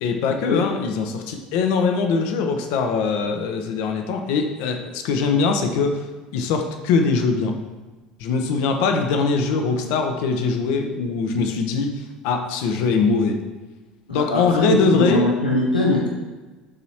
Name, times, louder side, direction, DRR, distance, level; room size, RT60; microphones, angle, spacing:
voice 1, 0.0-6.0 6.3-7.5 8.2-11.9 12.2-13.4 14.1-15.3, left 4 dB, 55° left, 5 dB, 0.8 m, -22 dB
voice 2, 14.1-16.1, left 1 dB, 85° left, -2 dB, 0.8 m, -21 dB
12.0 x 4.1 x 2.9 m, 1.2 s
figure-of-eight pair, 70°, 4 cm